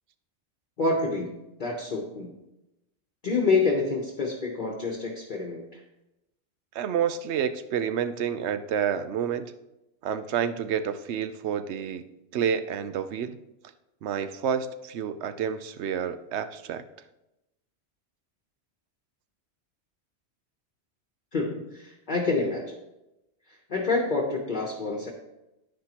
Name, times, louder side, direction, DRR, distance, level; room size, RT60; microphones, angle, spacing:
voice 1, 0.8-2.3 3.2-5.8 21.3-22.8 23.5-25.1, left 3 dB, 50° left, -1 dB, 1.0 m, -27 dB
voice 2, 6.7-9.5 10.0-12.0 12.3-13.4 14.0-16.8, right 8 dB, 75° right, 11 dB, 0.9 m, -29 dB
9.8 x 9.7 x 2.9 m, 0.94 s
omnidirectional pair, 1.2 m